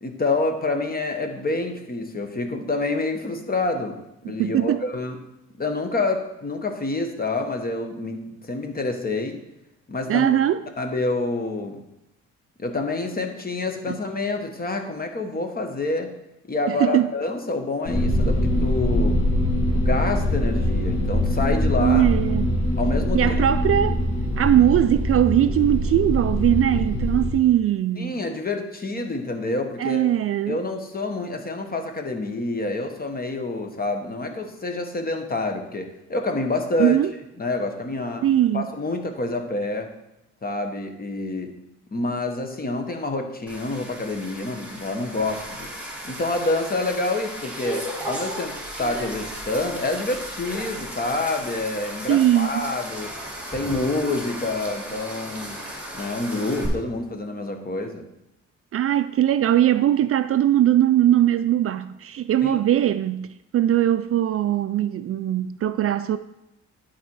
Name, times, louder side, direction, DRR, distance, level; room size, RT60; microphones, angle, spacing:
voice 1, 0.0-4.0 4.2-5.2 5.6-9.4 9.9-10.3 10.8-11.8 12.6-16.1 16.5-19.2 19.7-22.1 22.8-23.5 28.0-30.0 30.5-37.0 37.4-38.2 38.5-39.9 40.4-41.5 41.9-45.7 46.0-53.1 53.5-55.6 55.9-58.0 62.4-62.6, left 2 dB, 30° left, 1.3 m, -27 dB
voice 2, 4.4-4.8 10.1-10.6 13.9-14.0 16.7-17.1 21.8-22.5 23.1-24.0 24.4-28.1 29.8-30.6 36.8-37.1 38.2-38.7 52.1-52.7 58.7-66.2, right 11 dB, 50° right, 0.4 m, -20 dB
sound 1, 17.8-27.3, left 1 dB, 50° left, 3.2 m, -23 dB
sound 2, 43.5-56.7, right 1 dB, 5° right, 2.5 m, -35 dB
11.5 x 4.4 x 4.7 m
cardioid pair, 90°, 30 cm